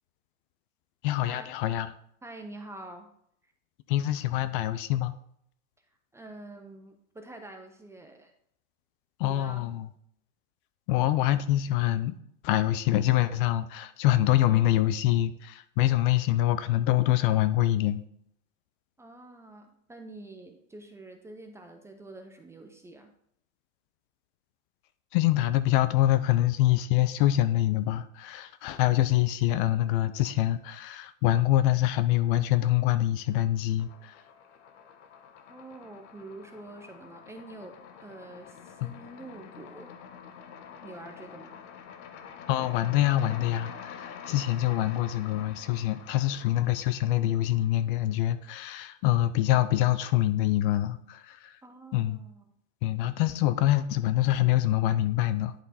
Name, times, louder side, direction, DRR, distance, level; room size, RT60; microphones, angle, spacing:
voice 1, 1.0-1.9 3.9-5.1 9.2-9.9 10.9-12.1 12.4-18.0 25.1-34.2 38.8-38.9 42.5-51.6 51.9-52.2 52.8-55.5, left 14 dB, 45° left, 13 dB, 0.5 m, -25 dB
voice 2, 2.2-3.1 6.1-8.3 9.2-9.7 19.0-23.1 35.5-39.9 40.8-41.6 51.6-52.6, right 2 dB, 5° right, 5 dB, 0.5 m, -46 dB
sound 1, 32.1-32.7 33.0-48.1, left 7 dB, 65° left, 1.1 m, -47 dB
10.5 x 3.5 x 4.2 m, 0.69 s
hypercardioid pair, 130°, 38 cm